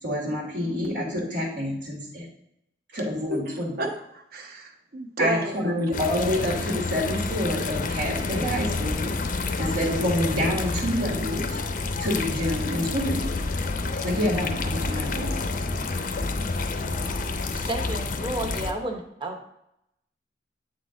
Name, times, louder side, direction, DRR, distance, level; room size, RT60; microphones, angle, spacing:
voice 1, 0.0-2.3 2.9-3.7 5.2-9.1 9.4-11.6 12.0-13.3 14.0-15.4, equal, 80° right, -2 dB, 1.7 m, -27 dB
voice 2, 3.3-5.9 14.0-14.3, right 2 dB, 55° right, 4 dB, 0.9 m, -32 dB
sound 1, 5.9-18.7, left 3 dB, 50° left, 0.5 m, -29 dB
voice 3, 17.5-19.4, right 1 dB, 25° right, 4 dB, 0.9 m, -32 dB
7.9 x 3.9 x 3.7 m, 0.80 s
head